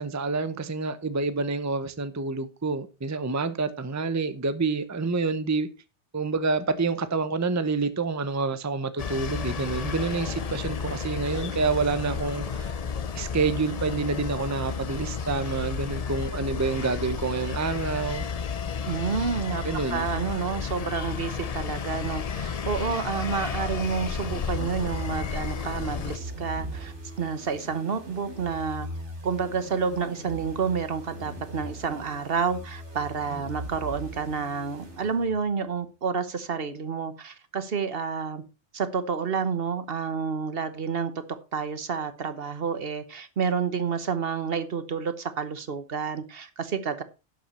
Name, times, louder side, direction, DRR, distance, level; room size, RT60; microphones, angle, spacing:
voice 1, 0.0-5.7 6.1-12.7 13.1-18.2 19.6-20.1, right 4 dB, 15° right, 0.7 m, -28 dB
sound 1, 9.0-26.2, left 6 dB, 45° left, 0.6 m, -32 dB
voice 2, 18.8-19.6 19.9-28.9 29.2-38.4 38.7-41.1 41.5-47.0, right 6 dB, 55° right, 1.2 m, -29 dB
sound 2, 23.8-35.5, equal, 80° right, 3.1 m, -40 dB
11.5 x 7.7 x 4.3 m
omnidirectional pair, 1.2 m